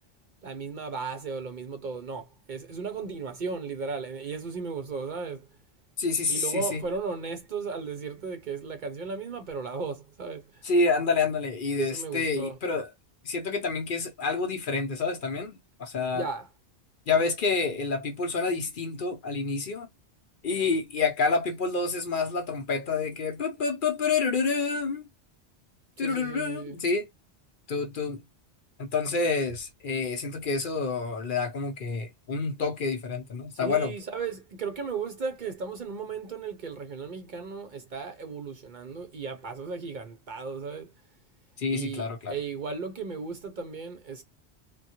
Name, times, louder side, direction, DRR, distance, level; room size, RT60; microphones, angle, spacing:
voice 1, 0.4-5.5 6.3-10.6 11.8-12.6 16.1-16.5 26.0-26.8 33.6-40.9 41.7-44.2, right 5 dB, 50° right, 0.7 m, -35 dB
voice 2, 6.0-6.8 10.6-12.9 13.2-16.2 17.1-19.9 20.4-25.1 26.0-27.1 27.7-28.2 28.8-33.9 41.6-42.3, left 4 dB, 55° left, 0.8 m, -28 dB
3.7 x 2.2 x 2.8 m
omnidirectional pair, 1.1 m